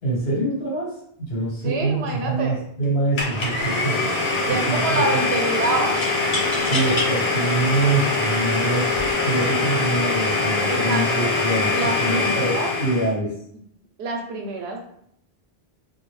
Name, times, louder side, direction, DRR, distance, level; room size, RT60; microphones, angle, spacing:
voice 1, 0.0-4.0 4.5-5.0 6.7-8.9 9.2-13.3, right 2 dB, 70° left, -5 dB, 1.3 m, -25 dB
voice 2, 1.6-2.6 4.5-6.0 10.7-11.2 11.7-12.7 14.0-14.8, right 3 dB, 85° right, 2 dB, 0.9 m, -27 dB
sound 1, 2.8-3.1 3.4-4.0 6.0-7.1 7.8-7.9 8.8-9.1, left 1 dB, 45° left, 0.9 m, -29 dB
Domestic sounds home sounds, 3.2-13.1, left 3 dB, 85° left, 1.0 m, -23 dB
2.3 x 2.2 x 3.0 m, 0.68 s
omnidirectional pair, 1.0 m